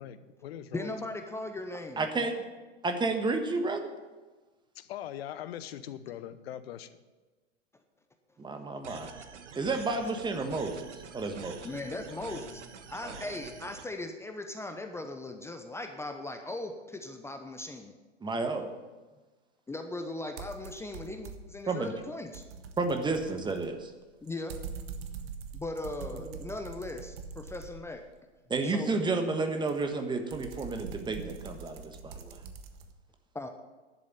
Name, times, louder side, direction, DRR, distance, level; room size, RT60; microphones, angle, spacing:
voice 1, 0.0-0.9 4.7-7.0, left 11 dB, 55° left, 13 dB, 1.1 m, -41 dB
voice 2, 0.7-2.3 11.6-17.9 19.7-22.4 24.2-24.6 25.5-28.1 28.6-28.9 33.3-33.5, left 2 dB, 5° left, 6 dB, 0.8 m, -39 dB
voice 3, 2.0-2.4 2.8-3.9 8.4-9.2 9.5-10.9 11.1-11.7 13.0-13.2 18.2-18.7 21.7-21.9 22.8-23.9 26.1-26.3 28.5-32.4, right 3 dB, 10° right, 6 dB, 1.4 m, -31 dB
sound 1, 8.8-13.8, right 6 dB, 75° right, 1.4 m, -46 dB
sound 2, 20.4-21.6 22.0-28.2 29.7-32.9, right 6 dB, 55° right, 1.5 m, -44 dB
11.5 x 7.4 x 8.9 m, 1.3 s
hypercardioid pair, 105°, 36 cm